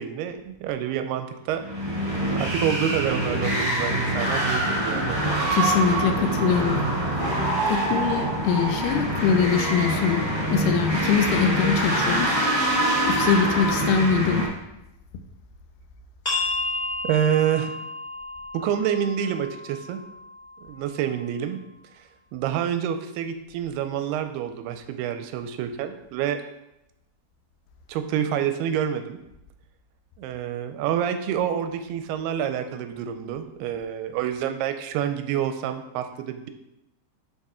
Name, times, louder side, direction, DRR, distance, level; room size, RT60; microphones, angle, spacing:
voice 1, 0.0-2.0 2.4-5.2 7.6-7.7 17.1-17.7 18.5-20.0 20.6-21.6 22.0-22.1 22.3-26.4 27.9-29.2 30.2-36.5, right 9 dB, 85° right, 8 dB, 2.5 m, -27 dB
sound 1, 1.6-14.5, right 1 dB, 15° right, 0.8 m, -25 dB
voice 2, 5.5-6.8 7.7-10.2 10.5-12.4 13.0-14.4, left 6 dB, 80° left, 6 dB, 2.6 m, -23 dB
sound 2, 16.2-21.6, left 2 dB, 15° left, 1.9 m, -33 dB
6.6 x 6.0 x 4.2 m, 0.89 s
omnidirectional pair, 4.7 m